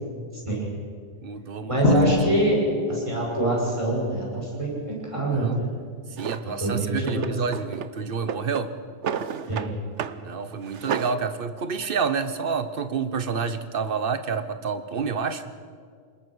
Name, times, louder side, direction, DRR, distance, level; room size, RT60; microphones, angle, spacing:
voice 1, 0.3-0.7 1.6-2.6 2.9-5.7 6.4-7.3 9.5-9.7, right 2 dB, 25° right, -3 dB, 6.5 m, -25 dB
voice 2, 1.2-1.9 5.3-5.6 6.2-8.7 10.2-15.4, right 5 dB, 55° right, 11 dB, 1.3 m, -29 dB
Drum, 1.8-3.5, left 3 dB, 70° left, 2.8 m, -24 dB
Drawer open or close, 6.2-6.4 7.0-7.9 8.2-9.7 10.0-10.2 10.5-11.2, right 8 dB, 90° right, 1.2 m, -31 dB
28.0 x 20.0 x 6.3 m, 2.1 s
omnidirectional pair, 1.2 m